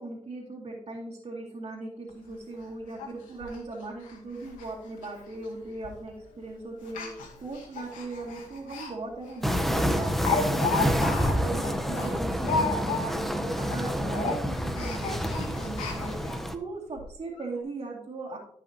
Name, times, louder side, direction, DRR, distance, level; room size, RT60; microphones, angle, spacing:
voice 1, 0.0-18.4, right 2 dB, 45° right, -4 dB, 2.4 m, -39 dB
Speech, 2.1-2.2 2.5-2.6 3.0-3.1 3.4-3.6 4.0-4.2 4.4-4.7 5.0-5.1 5.8-6.1 6.8-8.9 9.3-9.4 9.7-13.3 13.6-13.8 14.1-16.4 17.0-17.1 17.3-17.4, left 4 dB, 85° left, 2.2 m, -33 dB
sound 1, 9.4-16.6, equal, ahead, 1.0 m, -28 dB
13.5 x 5.7 x 2.9 m, 0.66 s
cardioid pair, 65°, 13 cm